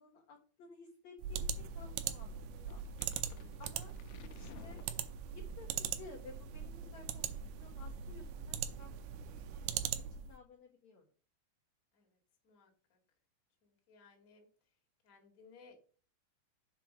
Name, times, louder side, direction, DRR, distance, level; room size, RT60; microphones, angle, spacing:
voice 1, 0.0-1.5 1.7-2.8 3.6-3.9 4.3-4.8 5.2-11.0, left 3 dB, 65° left, 0 dB, 1.8 m, -56 dB
sound 1, 1.2-10.4, right 8 dB, 85° right, 2.7 m, -41 dB
sound 2, 2.7-5.6, left 11 dB, 85° left, 2.6 m, -56 dB
voice 2, 12.4-13.0 13.6-14.5 15.0-15.8, left 4 dB, 30° left, 1 dB, 1.5 m, -61 dB
7.6 x 4.6 x 6.2 m, 0.41 s
omnidirectional pair, 4.9 m